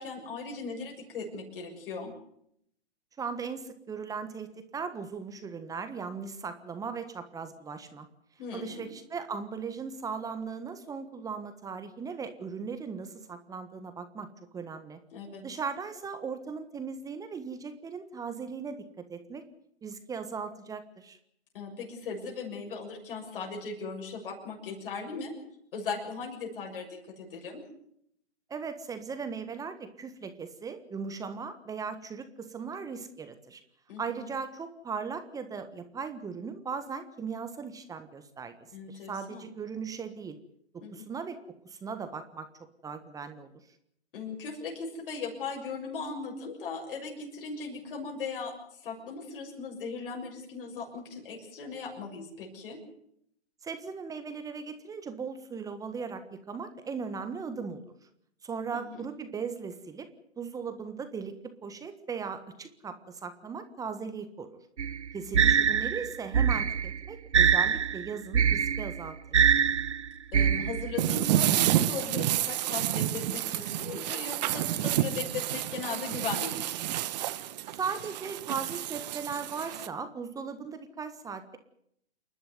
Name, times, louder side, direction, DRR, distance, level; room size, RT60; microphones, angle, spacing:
voice 1, 0.0-2.1 8.4-8.9 15.1-15.4 21.5-25.3 25.7-26.9 27.2-27.6 33.9-34.3 38.7-39.4 40.8-41.1 44.1-52.8 58.7-59.1 65.3-65.5 70.3-76.6, left 4 dB, 50° left, 0 dB, 6.8 m, -38 dB
voice 2, 3.2-8.1 8.5-14.3 14.5-15.0 15.4-19.4 19.8-21.2 28.5-33.6 34.0-38.5 38.9-40.4 40.9-41.4 41.6-42.5 42.8-43.5 53.6-57.8 58.4-60.1 60.4-64.6 65.1-69.5 77.8-81.6, right 5 dB, 10° right, 10 dB, 1.4 m, -38 dB
sound 1, 64.8-71.1, right 7 dB, 80° right, 0.8 m, -25 dB
sound 2, 71.0-79.9, right 12 dB, 40° right, 1.3 m, -30 dB
29.0 x 12.0 x 9.5 m, 0.72 s
figure-of-eight pair, 130°, 34 cm